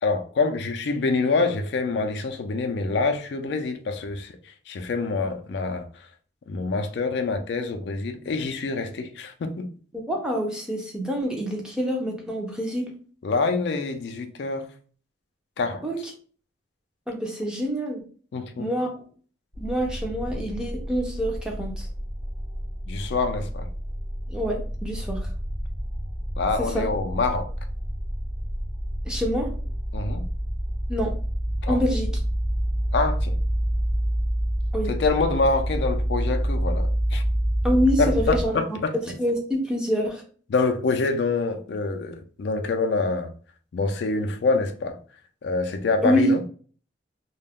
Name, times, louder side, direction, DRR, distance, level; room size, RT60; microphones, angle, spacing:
voice 1, 0.0-6.1 6.5-9.7 13.2-14.7 15.6-15.8 18.3-18.7 22.9-23.7 26.4-27.5 29.9-30.3 31.6-31.8 32.9-33.3 34.9-37.2 38.0-38.9 40.5-43.3 43.7-45.0 45.4-46.4, left 3 dB, 60° left, 0.3 m, -26 dB
voice 2, 10.1-12.9 15.8-16.0 17.1-18.0 18.6-18.9 19.6-21.9 24.3-25.2 26.6-26.9 29.1-29.5 30.9-31.1 31.7-32.1 34.7-34.9 37.6-38.6 39.2-40.2 46.0-46.3, equal, 5° right, 0.5 m, -26 dB
sound 1, 19.5-38.5, equal, 50° right, 0.9 m, -28 dB
2.3 x 2.1 x 3.4 m
head